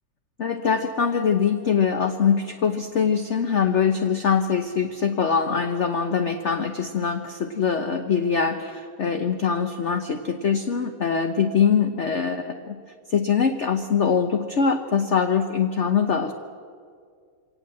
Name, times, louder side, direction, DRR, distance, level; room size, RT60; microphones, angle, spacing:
voice 1, 0.4-12.8 13.1-16.3, left 6 dB, 50° left, 7 dB, 0.9 m, -23 dB
24.0 x 18.0 x 7.7 m, 2.1 s
omnidirectional pair, 2.4 m